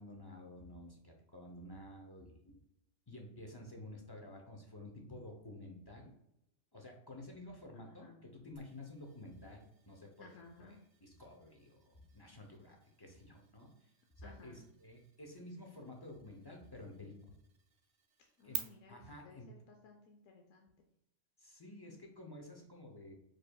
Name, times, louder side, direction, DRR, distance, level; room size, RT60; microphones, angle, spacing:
voice 1, 0.0-2.6 3.1-6.1 6.7-10.8 11.0-13.9 14.2-17.2 18.4-18.6 18.9-19.5 21.4-23.1, left 1 dB, 25° left, 1 dB, 0.6 m, -51 dB
voice 2, 7.7-8.2 10.2-10.8 14.2-14.7 18.4-20.8, left 4 dB, 85° left, 2 dB, 1.0 m, -59 dB
sound 1, 8.6-18.6, right 7 dB, 55° right, 0.4 m, -53 dB
4.9 x 4.5 x 2.3 m, 0.84 s
omnidirectional pair, 1.3 m